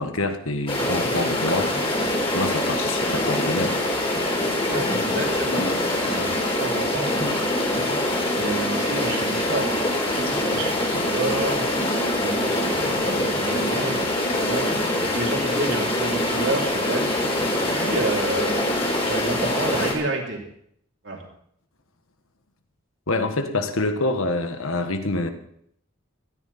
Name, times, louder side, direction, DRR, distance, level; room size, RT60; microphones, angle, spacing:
voice 1, 0.0-1.7 2.3-3.8 10.9-11.1 23.1-25.3, left 2 dB, 70° left, 7 dB, 1.5 m, -26 dB
sound 1, 0.7-19.9, left 1 dB, 25° left, 4.0 m, -24 dB
voice 2, 4.7-5.7 6.0-7.1 8.3-9.8 10.4-11.7 12.2-17.3 17.7-18.7 19.0-20.4 21.0-21.2, right 2 dB, 55° right, 0 dB, 3.2 m, -30 dB
17.0 x 13.5 x 4.3 m, 0.69 s
head